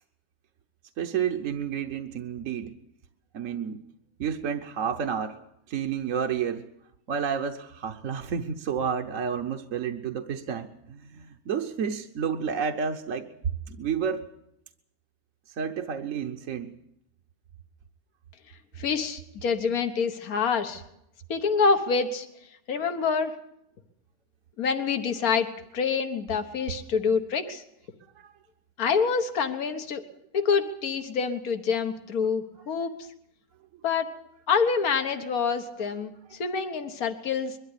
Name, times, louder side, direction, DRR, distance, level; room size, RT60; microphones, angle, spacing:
voice 1, 1.0-2.8 3.3-3.8 4.2-5.4 5.7-6.6 7.1-13.3 13.7-14.3 15.5-16.7 28.2-28.3, right 7 dB, 65° right, 4 dB, 1.3 m, -30 dB
voice 2, 18.8-20.8 21.3-22.3 22.7-23.3 24.6-27.6 28.8-30.0 30.3-32.9 33.8-34.1 34.5-37.6, left 5 dB, 80° left, 7 dB, 1.8 m, -26 dB
22.5 x 13.0 x 9.8 m, 0.80 s
omnidirectional pair, 1.5 m